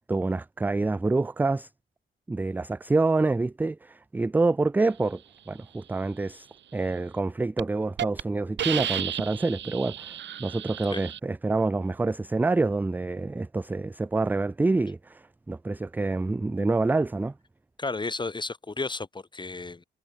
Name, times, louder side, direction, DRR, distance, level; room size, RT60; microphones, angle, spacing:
voice 1, 0.1-1.7 2.3-5.2 5.5-6.5 6.7-17.3, right 3 dB, 10° right, 0.3 m, -27 dB
Hiss, 7.0-7.2 7.6-7.7 8.0-8.2 8.6-11.2, right 10 dB, 65° right, 2.3 m, -33 dB
voice 2, 17.8-19.8, left 3 dB, 25° left, 5.4 m, -33 dB
cardioid pair, 90°, 20 cm